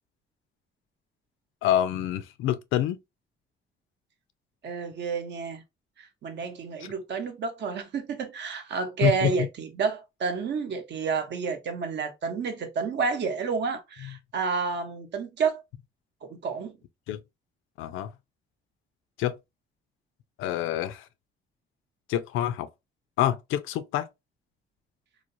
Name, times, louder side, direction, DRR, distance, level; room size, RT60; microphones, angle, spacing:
voice 1, 1.6-3.0 9.0-9.3 14.0-14.1 17.1-17.2 17.8-18.1 19.2-19.4 20.4-21.1 22.1-22.7 23.2-24.1, left 12 dB, 90° left, 0.4 m, -26 dB
voice 2, 4.6-5.6 6.0-15.6 16.2-16.7, right 5 dB, 60° right, 0.7 m, -30 dB
3.1 x 2.0 x 2.5 m
cardioid pair, 90°, 20 cm